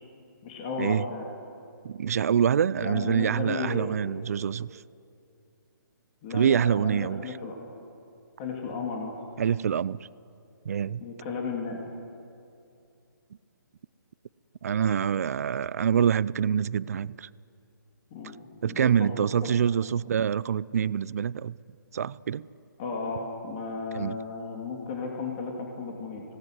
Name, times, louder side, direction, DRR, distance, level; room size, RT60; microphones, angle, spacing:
voice 1, 0.4-1.2 2.8-3.9 6.2-7.6 8.4-9.1 11.0-11.8 18.1-18.9 19.4-19.5 22.8-26.2, left 4 dB, 25° left, 2.9 m, -34 dB
voice 2, 1.8-4.8 6.3-7.4 9.4-10.0 10.6-11.0 14.6-17.3 18.6-21.6 21.9-22.5 23.9-24.2, right 8 dB, 45° right, 0.5 m, -26 dB
25.0 x 18.0 x 9.4 m
hypercardioid pair, 165°, 11 cm